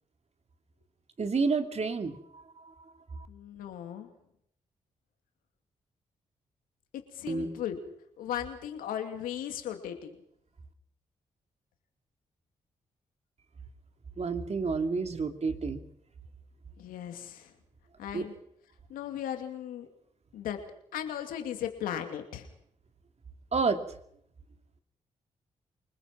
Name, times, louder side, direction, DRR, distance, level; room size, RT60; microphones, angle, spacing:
voice 1, 1.2-2.7 3.1-3.3 7.3-7.6 14.2-15.8 18.1-18.3 23.5-23.8, right 4 dB, 50° right, 7 dB, 2.6 m, -30 dB
voice 2, 3.3-4.1 6.9-7.8 8.2-10.1 16.8-17.5 18.0-18.3 18.9-19.9 20.3-20.6 20.9-22.5, left 10 dB, 90° left, 6 dB, 2.6 m, -37 dB
25.0 x 20.5 x 6.1 m, 0.72 s
supercardioid pair, 45°, 14 cm